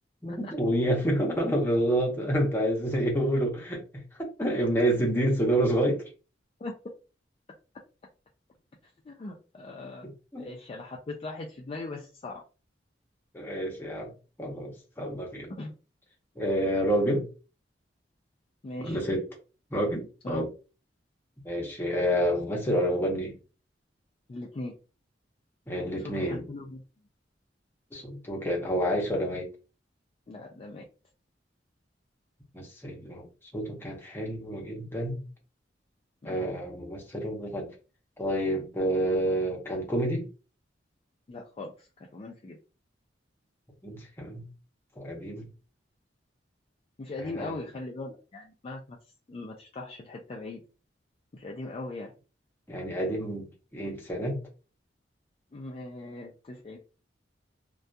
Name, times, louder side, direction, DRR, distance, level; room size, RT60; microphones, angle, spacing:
voice 1, 0.2-3.8 4.2-6.0 10.3-10.6 13.3-14.1 14.4-15.5 16.4-17.3 18.8-19.2 19.7-20.5 21.4-23.3 25.7-26.4 27.9-29.5 32.5-33.3 33.5-35.2 36.2-37.7 38.2-40.3 43.8-44.4 45.0-45.5 47.3-47.5 52.7-54.4, equal, 15° left, 0.7 m, -28 dB
voice 2, 9.0-10.1 10.4-12.4 15.6-15.7 16.6-16.8 18.6-19.0 20.2-20.5 24.3-24.7 25.9-26.8 30.3-30.8 36.2-36.5 41.3-42.6 47.0-49.0 49.3-50.6 51.3-52.1 55.5-56.8, left 2 dB, 35° left, 0.4 m, -39 dB
2.6 x 2.3 x 2.2 m
head